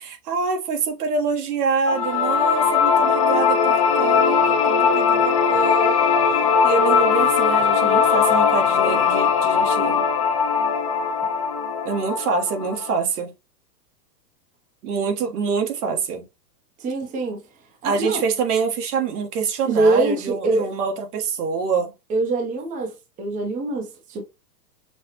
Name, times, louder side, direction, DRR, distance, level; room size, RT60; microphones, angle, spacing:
voice 1, 0.0-5.9 6.6-10.1 11.8-13.3 14.8-16.2 17.8-21.9, right 5 dB, 65° right, 1.5 m, -25 dB
sound 1, 1.9-12.9, left 6 dB, 25° left, 0.3 m, -19 dB
voice 2, 16.8-17.4 17.8-18.2 19.6-20.7 22.1-24.2, right 2 dB, 15° right, 0.9 m, -23 dB
6.0 x 2.3 x 3.0 m
hypercardioid pair, 150°, 49 cm